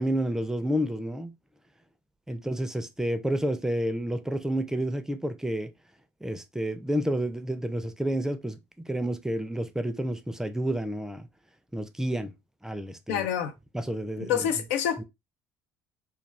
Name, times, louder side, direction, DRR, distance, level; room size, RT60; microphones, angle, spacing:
voice 1, 0.0-1.3 2.3-5.7 6.2-11.3 11.7-12.3 12.6-13.3 13.7-14.5 15.0-15.1, right 1 dB, 5° right, 0.4 m, -30 dB
voice 2, 13.1-13.5 14.2-15.0, left 9 dB, 80° left, 0.4 m, -27 dB
2.3 x 2.3 x 3.1 m
hypercardioid pair, 70°, 7 cm